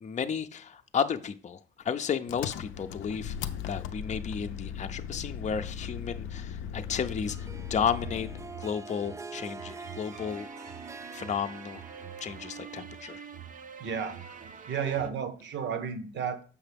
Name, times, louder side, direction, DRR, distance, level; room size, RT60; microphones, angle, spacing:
voice 1, 0.0-3.3 3.7-8.3 8.6-10.5 11.1-11.8 12.2-13.2, left 7 dB, 35° left, 0.6 m, -33 dB
Engine, 2.3-8.6, left 8 dB, 80° left, 0.5 m, -38 dB
Harp, 7.3-13.1, right 4 dB, 15° right, 0.3 m, -45 dB
sound 1, 8.0-15.1, right 7 dB, 40° right, 0.7 m, -46 dB
voice 2, 13.8-14.2 14.7-16.4, right 7 dB, 65° right, 1.0 m, -32 dB
7.0 x 5.6 x 3.5 m
cardioid pair, 90°, 20 cm